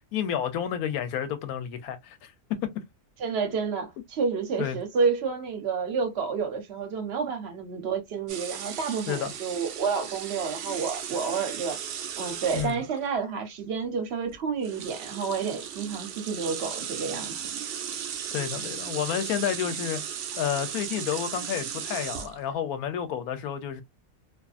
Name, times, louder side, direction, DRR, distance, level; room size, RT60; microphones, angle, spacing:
voice 1, 0.1-2.3 2.6-2.8 4.6-4.8 9.1-9.3 12.5-12.8 18.3-20.0 20.4-23.8, left 9 dB, 85° left, 1.1 m, -30 dB
voice 2, 3.2-11.8 12.2-17.4, right 5 dB, 55° right, 0.9 m, -30 dB
sound 1, 8.3-13.1 14.2-14.4 14.6-22.5, right 8 dB, 80° right, 0.5 m, -36 dB
2.5 x 2.4 x 2.3 m
omnidirectional pair, 1.5 m